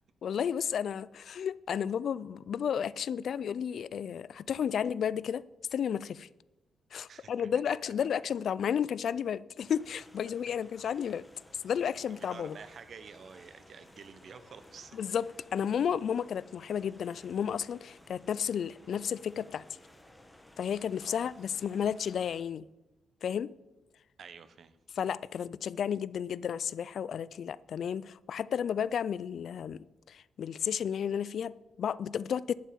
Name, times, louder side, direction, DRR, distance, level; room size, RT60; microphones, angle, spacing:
voice 1, 0.2-5.4 5.7-6.3 6.9-11.2 11.6-12.6 15.0-15.3 15.5-19.6 20.6-22.6 23.2-23.5 25.0-32.5, left 8 dB, 60° left, 19 dB, 0.3 m, -32 dB
voice 2, 7.0-7.9 11.6-15.0 21.0-21.2 24.2-24.8 32.1-32.3, right 6 dB, 55° right, 13 dB, 0.8 m, -50 dB
sound 1, 9.6-22.4, left 1 dB, 5° left, 1.2 m, -57 dB
11.5 x 5.5 x 8.6 m, 1.0 s
cardioid pair, 125°, 0 cm